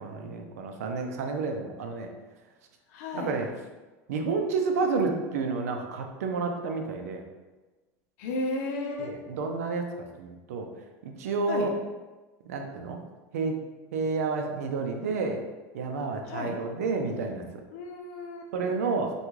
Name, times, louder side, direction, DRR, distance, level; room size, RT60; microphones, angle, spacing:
voice 1, 0.0-2.1 3.1-3.5 4.1-7.2 9.0-10.7 11.0-11.7 12.5-13.0 13.3-13.6 13.9-15.4 15.7-17.6 18.5-19.1, right 4 dB, 90° right, 4 dB, 0.5 m, -30 dB
voice 2, 2.9-3.3 8.2-9.2 11.5-11.7 16.3-16.6 17.7-18.5, left 2 dB, 70° left, 2 dB, 0.6 m, -33 dB
3.4 x 2.3 x 3.1 m, 1.2 s
supercardioid pair, 110°, 8 cm